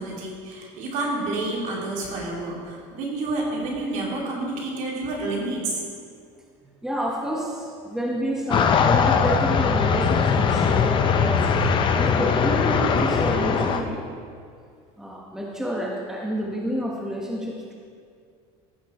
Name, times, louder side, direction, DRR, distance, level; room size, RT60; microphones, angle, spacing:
voice 1, 0.0-5.8, right 2 dB, 60° right, -3 dB, 3.0 m, -29 dB
voice 2, 6.6-11.4 11.8-14.0 15.0-17.7, right 1 dB, 5° right, -3 dB, 1.3 m, -29 dB
sound 1, 8.5-13.8, left 6 dB, 35° left, 0.7 m, -20 dB
15.0 x 6.5 x 4.4 m, 2.2 s
supercardioid pair, 125°, 15 cm